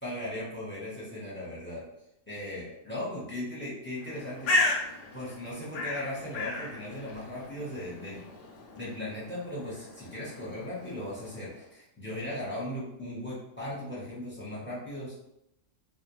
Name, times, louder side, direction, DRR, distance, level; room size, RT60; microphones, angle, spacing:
voice 1, 0.0-1.8 2.3-4.7 5.1-8.2 8.8-15.1, left 1 dB, 10° left, -8 dB, 0.8 m, -38 dB
Bird, 4.0-11.6, left 2 dB, 70° left, 0.9 m, -35 dB
2.5 x 2.1 x 3.0 m, 0.81 s
omnidirectional pair, 1.4 m